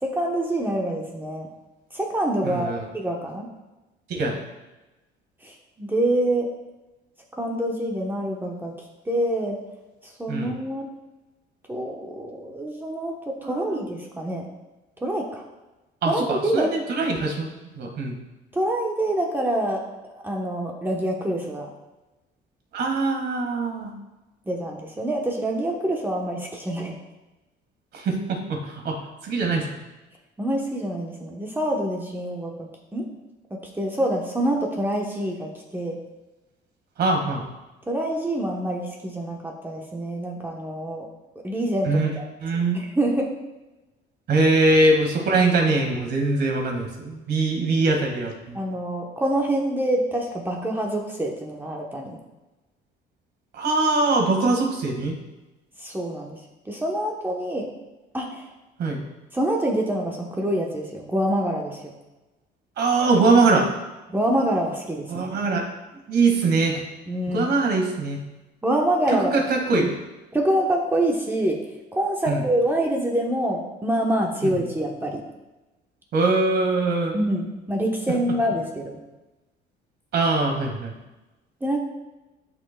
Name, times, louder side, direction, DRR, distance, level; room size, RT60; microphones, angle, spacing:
voice 1, 0.0-1.5 1.9-3.5 5.4-6.5 7.4-8.7 9.0-9.6 10.0-10.9 11.7-14.5 15.0-15.4 16.1-16.7 18.5-21.7 24.5-27.0 30.4-33.1 33.5-36.0 37.9-41.1 41.4-42.2 42.5-43.3 48.5-52.2 55.8-56.4 56.6-57.7 58.1-58.5 59.3-61.9 64.1-65.3 67.1-67.5 68.6-69.4 69.7-69.9 70.3-75.2 77.1-79.0 81.6-81.8, right 1 dB, 10° right, -1 dB, 0.9 m, -26 dB
voice 2, 2.4-2.8 4.1-4.4 10.3-10.6 13.4-13.8 16.0-17.5 17.8-18.2 22.7-23.9 27.9-29.7 37.0-37.5 41.8-42.1 42.4-42.8 44.3-48.6 53.5-55.2 58.8-59.0 62.8-63.7 65.1-65.7 66.1-66.8 67.3-68.2 69.1-69.9 72.3-72.4 74.4-74.5 76.1-77.1 80.1-81.0, right 3 dB, 60° right, 2 dB, 1.7 m, -22 dB
12.0 x 5.5 x 2.2 m, 1.1 s
cardioid pair, 125°, 19 cm